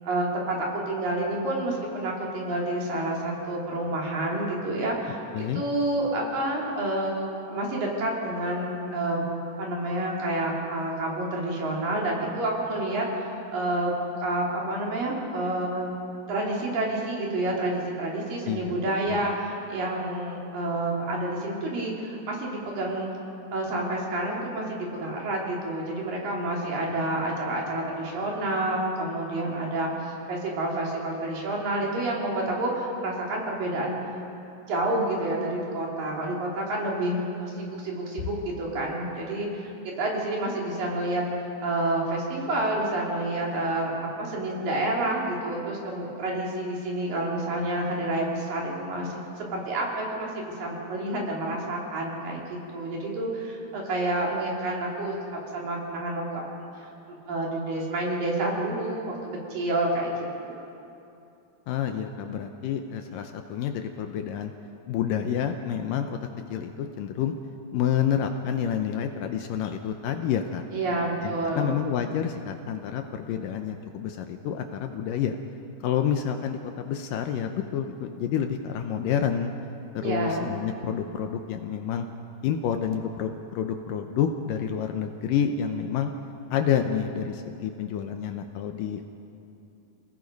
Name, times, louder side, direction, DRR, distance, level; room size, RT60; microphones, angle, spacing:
voice 1, 0.0-5.2 5.5-9.2 9.6-15.9 16.3-23.1 23.5-34.0 34.7-41.2 41.6-49.1 49.4-52.4 52.7-56.7 57.1-59.1 59.5-60.1 60.4-60.6 70.7-71.7 80.0-80.5, right 1 dB, 65° right, -3 dB, 4.7 m, -29 dB
voice 2, 61.7-64.5 64.9-67.3 67.7-70.6 71.2-75.4 75.8-79.5 79.9-82.1 82.4-86.1 86.5-89.0, left 8 dB, 75° left, 6 dB, 2.2 m, -29 dB
28.0 x 18.0 x 5.3 m, 2.8 s
omnidirectional pair, 4.4 m